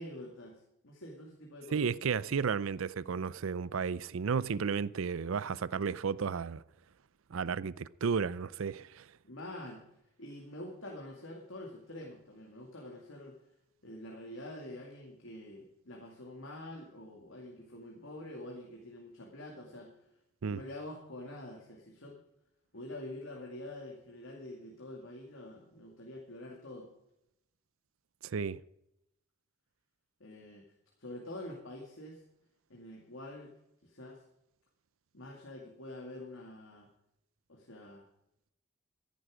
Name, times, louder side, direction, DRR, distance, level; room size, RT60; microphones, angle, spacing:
voice 1, 0.0-1.8 9.2-9.9 10.2-13.4 13.8-19.9 20.5-22.2 22.7-26.9 30.2-30.7 31.0-32.2 32.7-33.5 33.8-34.2 35.1-36.9 37.5-38.0, left 1 dB, 70° left, 2.4 m, -46 dB
voice 2, 1.7-6.6 7.3-9.1 20.4-20.6 28.2-28.6, right 6 dB, 75° right, 0.5 m, -33 dB
14.5 x 11.5 x 4.9 m
head